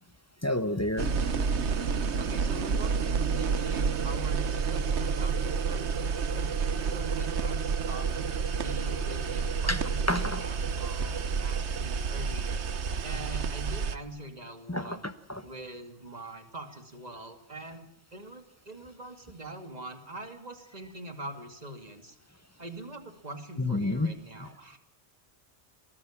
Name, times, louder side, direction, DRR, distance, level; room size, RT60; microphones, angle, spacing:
voice 1, 0.4-1.1 9.7-9.8 10.1-10.4 14.7-15.4 23.6-24.1, left 1 dB, 15° left, 12 dB, 1.0 m, -29 dB
sound 1, 1.0-13.9, right 5 dB, 75° right, 1.3 m, -29 dB
voice 2, 2.2-6.5 6.8-8.1 8.4-12.6 13.0-15.0 15.4-17.8 18.1-22.2 22.6-24.8, right 1 dB, 35° right, 7 dB, 2.6 m, -43 dB
23.0 x 19.0 x 7.4 m, 0.70 s
omnidirectional pair, 1.2 m